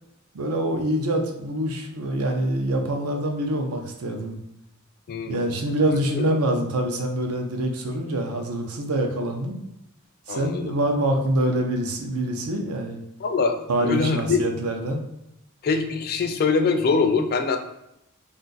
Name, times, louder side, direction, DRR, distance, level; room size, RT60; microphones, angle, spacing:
voice 1, 0.3-4.4 5.3-9.6 10.3-13.0 13.7-15.1, right 1 dB, 90° right, 3 dB, 0.6 m, -25 dB
voice 2, 5.1-5.6 6.1-6.3 10.3-10.8 13.2-14.5 15.6-17.6, left 4 dB, 45° left, 6 dB, 0.3 m, -23 dB
2.5 x 2.4 x 3.9 m, 0.84 s
head